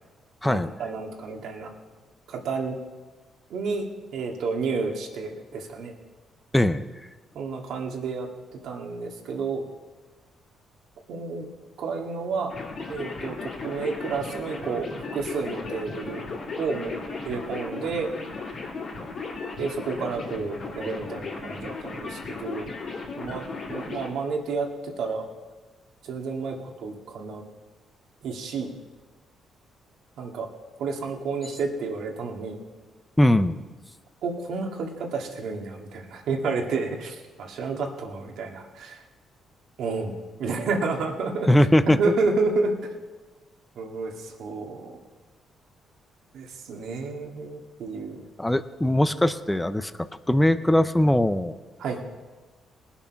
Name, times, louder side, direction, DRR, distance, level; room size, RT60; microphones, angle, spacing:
voice 1, 0.4-1.7 2.3-2.8 3.5-3.9 4.1-5.9 7.4-9.6 11.1-11.5 11.8-12.5 12.9-16.3 16.6-17.0 17.3-18.1 19.6-22.7 23.2-25.3 26.0-27.4 28.2-28.7 30.2-30.5 30.8-32.6 34.2-39.0 39.8-40.1 40.4-41.5 41.9-42.7 43.8-45.0 46.3-48.2 51.8-52.0, right 4 dB, 75° right, 2 dB, 2.0 m, -30 dB
voice 2, 6.5-6.9 33.2-33.6 41.5-42.1 48.4-49.9 50.3-51.6, left 1 dB, 10° left, 12 dB, 0.6 m, -20 dB
sound 1, 12.5-24.1, left 4 dB, 55° left, 3.1 m, -36 dB
20.0 x 7.0 x 5.8 m, 1.3 s
cardioid pair, 90°, 0 cm